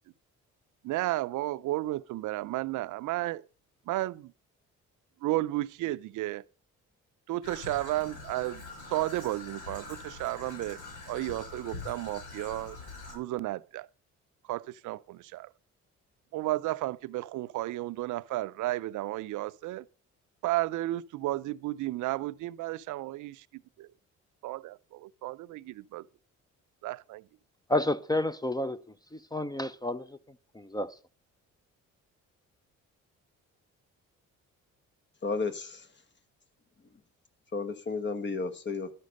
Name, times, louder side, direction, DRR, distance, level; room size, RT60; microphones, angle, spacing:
voice 1, 0.8-3.5 3.9-4.3 5.2-6.4 7.3-10.8 11.1-12.8 13.1-13.9 14.4-15.5 16.3-19.9 20.4-23.9 24.4-26.1 26.8-27.3, right 17 dB, 75° right, 0.5 m, -33 dB
Traffic noise roadway noise / Trickle dribble, 7.4-13.2, left 3 dB, 85° left, 5.8 m, -44 dB
voice 2, 27.7-28.8 29.1-30.1 30.5-30.9, left 1 dB, 15° left, 0.6 m, -30 dB
voice 3, 35.2-35.9 37.5-38.9, left 4 dB, 35° left, 1.1 m, -32 dB
11.5 x 6.4 x 5.2 m
cardioid pair, 90°, 30 cm